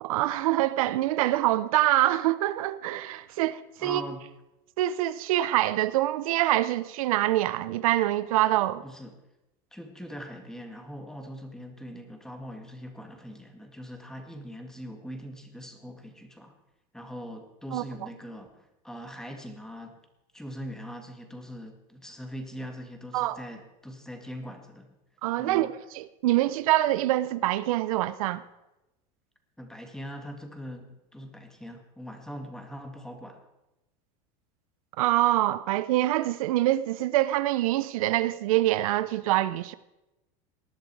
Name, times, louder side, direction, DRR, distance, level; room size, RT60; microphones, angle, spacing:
voice 1, 0.0-4.0 4.8-8.8 17.7-17.8 23.1-23.4 25.2-28.4 35.0-39.7, right 15 dB, 85° right, 0.7 m, -25 dB
voice 2, 3.8-4.2 8.8-9.2 9.7-16.5 16.9-20.0 20.3-24.9 25.4-25.7 29.6-33.5, equal, 5° left, 2.1 m, -41 dB
19.0 x 11.0 x 4.8 m
supercardioid pair, 130°, 17 cm